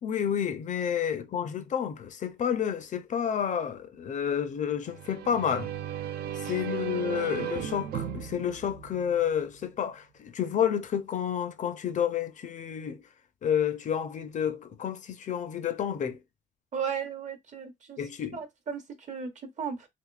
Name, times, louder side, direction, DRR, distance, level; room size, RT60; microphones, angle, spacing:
voice 1, 0.0-5.7 6.5-13.0 13.4-16.2 18.0-18.4, left 8 dB, 45° left, 0.5 m, -30 dB
sound 1, 4.9-9.6, right 10 dB, 65° right, 0.4 m, -36 dB
voice 2, 16.7-18.0 18.3-18.8 19.1-19.3 19.6-19.9, right 7 dB, 45° right, 0.8 m, -35 dB
3.5 x 3.0 x 2.3 m
cardioid pair, 130°, 18 cm